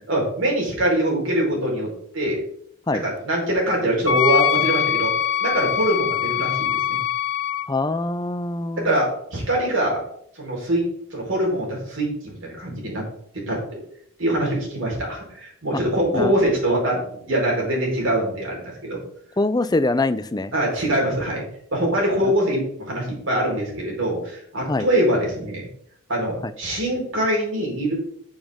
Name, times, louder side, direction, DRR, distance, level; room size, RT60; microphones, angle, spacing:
voice 1, 0.1-2.4 2.9-5.1 5.4-7.0 8.8-10.0 10.3-13.0 13.3-13.6 14.2-17.0 17.3-19.0 20.5-21.4 21.7-25.7 26.1-27.9, right 1 dB, 65° right, -1 dB, 4.5 m, -23 dB
Wind instrument woodwind instrument, 4.1-7.7, left 9 dB, 55° left, 0.7 m, -22 dB
voice 2, 7.7-9.0 15.7-15.8 16.1-16.3 19.4-20.5 24.7-24.9 26.4-26.5, left 2 dB, 20° left, 12 dB, 0.4 m, -23 dB
13.0 x 7.1 x 3.7 m, 0.66 s
head